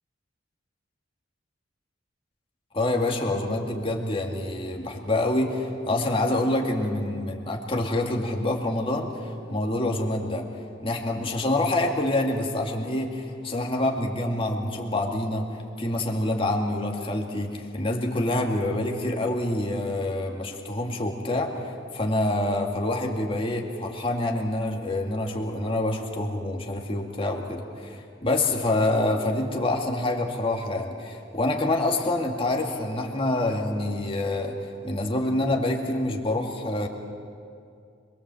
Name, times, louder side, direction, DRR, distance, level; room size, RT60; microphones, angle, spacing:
voice 1, 2.7-10.5 10.8-15.4 15.8-34.6 34.8-36.9, left 1 dB, 30° left, 1 dB, 2.3 m, -26 dB
26.5 x 22.0 x 7.8 m, 2.4 s
head